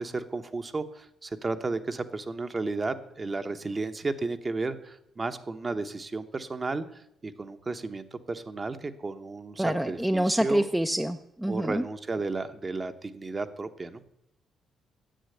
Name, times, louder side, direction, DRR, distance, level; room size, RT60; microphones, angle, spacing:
voice 1, 0.0-10.7 11.5-14.0, right 3 dB, 30° right, 9 dB, 1.0 m, -33 dB
voice 2, 9.6-11.8, right 1 dB, 5° right, 7 dB, 0.6 m, -26 dB
10.0 x 8.1 x 7.8 m, 0.78 s
cardioid pair, 90°, 0 cm